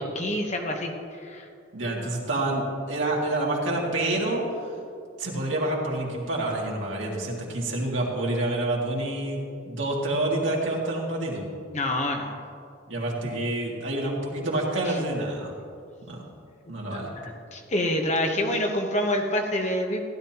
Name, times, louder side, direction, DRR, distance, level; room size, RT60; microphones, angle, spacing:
voice 1, 0.1-1.5 11.7-12.4 14.9-15.0 16.9-17.0 17.5-20.0, left 1 dB, 35° left, 2 dB, 1.1 m, -27 dB
voice 2, 1.7-4.7 5.2-11.5 12.9-15.6 16.0-16.2 16.7-17.1, right 1 dB, 85° right, -3 dB, 2.2 m, -28 dB
15.5 x 11.0 x 3.0 m, 2.4 s
head